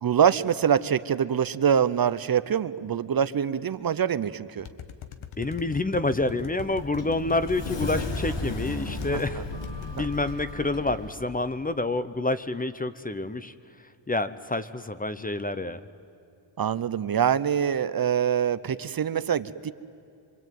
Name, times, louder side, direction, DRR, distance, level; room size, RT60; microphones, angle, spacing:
voice 1, 0.0-4.7 9.4-9.5 10.0-10.1 16.6-19.7, right 8 dB, 50° right, 14 dB, 0.7 m, -24 dB
sound 1, 4.6-9.3 9.6-10.4, left 8 dB, 85° left, 1.6 m, -41 dB
voice 2, 5.4-9.4 9.8-13.5 14.1-15.8, left 2 dB, 20° left, 12 dB, 0.7 m, -28 dB
Sliding door, 6.3-11.1, left 2 dB, 60° left, 2.6 m, -35 dB
26.0 x 24.0 x 9.3 m, 2.6 s
wide cardioid pair, 165°, 48 cm